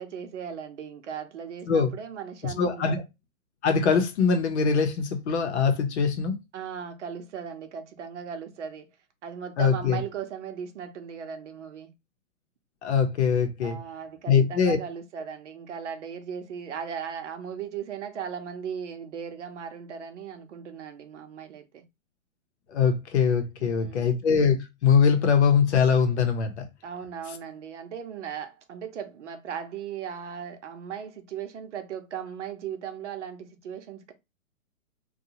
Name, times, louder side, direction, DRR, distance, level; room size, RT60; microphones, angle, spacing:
voice 1, 0.0-3.0 6.5-8.9 9.2-11.9 13.6-21.8 23.6-24.2 26.8-34.1, right 7 dB, 55° right, 0.8 m, -37 dB
voice 2, 2.4-3.0 3.6-6.4 9.6-10.0 12.8-13.8 14.3-14.8 22.7-24.6 24.8-26.7, left 6 dB, 55° left, 0.8 m, -22 dB
2.7 x 2.3 x 2.8 m
hypercardioid pair, 155°, 42 cm